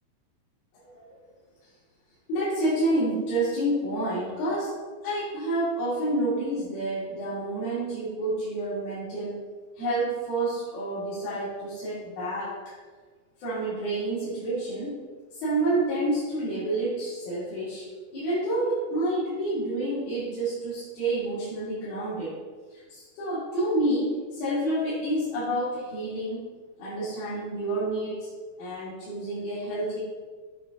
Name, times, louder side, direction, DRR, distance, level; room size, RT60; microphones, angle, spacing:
voice 1, 2.3-4.7 5.0-9.4 9.8-12.5 13.4-15.0 15.3-17.9 18.1-22.3 22.9-26.5 26.8-28.3 28.6-30.0, right 1 dB, 80° left, -12 dB, 3.9 m, -28 dB
8.4 x 4.2 x 3.7 m, 1.4 s
omnidirectional pair, 4.1 m